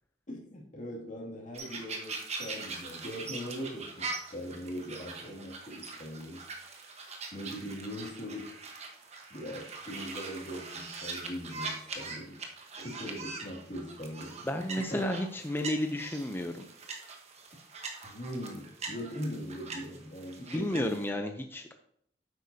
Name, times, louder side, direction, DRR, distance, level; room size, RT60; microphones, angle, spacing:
voice 1, 0.3-6.4 7.3-8.6 9.3-12.4 12.8-14.4 14.8-15.0 18.0-20.9, equal, 45° left, -2 dB, 2.4 m, -41 dB
sound 1, 1.5-21.1, right 3 dB, 40° right, 1.2 m, -42 dB
voice 2, 14.4-16.6 20.5-21.7, left 1 dB, 15° left, 5 dB, 0.5 m, -32 dB
10.0 x 8.0 x 2.8 m, 0.69 s
head